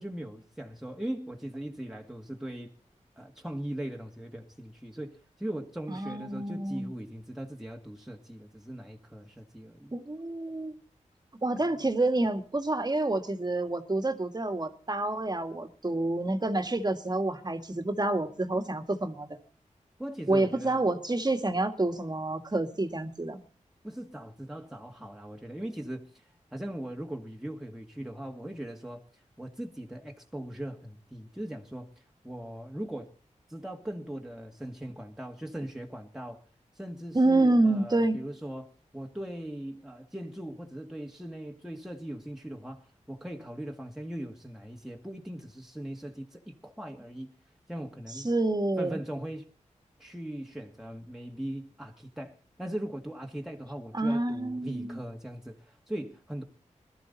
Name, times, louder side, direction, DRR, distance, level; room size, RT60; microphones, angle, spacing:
voice 1, 0.0-2.7 3.2-10.0 20.0-20.8 23.8-26.1 26.5-29.0 29.4-31.9 32.2-33.1 33.5-36.4 36.8-47.3 47.7-48.3 48.8-49.5 50.0-56.4, right 1 dB, 5° right, 2.0 m, -39 dB
voice 2, 5.9-6.9 9.9-10.7 11.4-19.4 20.3-23.4 37.1-38.2 48.2-49.0 53.9-55.0, right 2 dB, 30° right, 1.9 m, -28 dB
21.5 x 13.0 x 4.1 m
cardioid pair, 60°, 13 cm